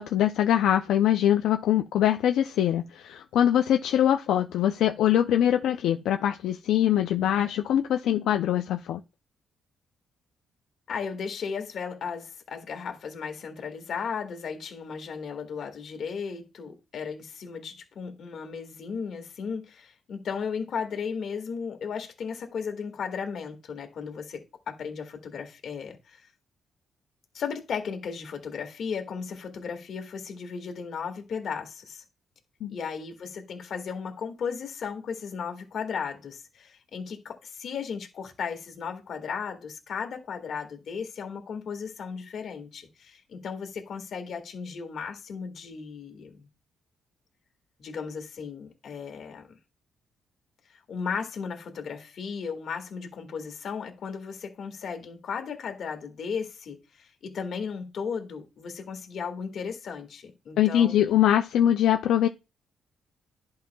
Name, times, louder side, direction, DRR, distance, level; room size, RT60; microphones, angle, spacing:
voice 1, 0.0-9.0 32.6-32.8 60.6-62.3, left 11 dB, 85° left, 0.5 m, -23 dB
voice 2, 10.9-26.3 27.3-32.0 32.7-46.5 47.8-49.5 50.7-61.1, left 6 dB, 60° left, 1.8 m, -35 dB
11.0 x 5.5 x 2.3 m
cardioid pair, 110°, 0 cm